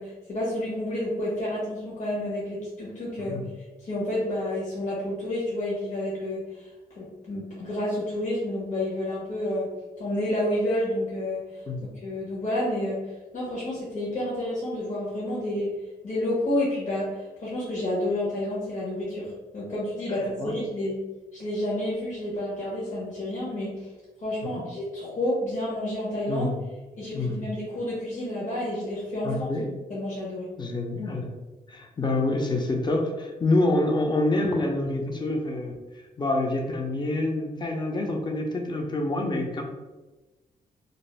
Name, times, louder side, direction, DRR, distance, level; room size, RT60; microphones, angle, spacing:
voice 1, 0.0-3.4 3.8-9.7 10.0-11.6 12.0-15.7 16.0-21.0 21.3-23.9 24.2-26.5 27.0-29.4 29.9-30.5, left 1 dB, 55° left, -7 dB, 1.1 m, -30 dB
voice 2, 26.3-26.6 27.1-27.4 29.2-29.7 30.6-31.3 31.7-35.7 36.2-39.6, left 2 dB, 30° left, 2 dB, 0.6 m, -27 dB
2.6 x 2.1 x 3.2 m, 1.1 s
cardioid pair, 70°, 15 cm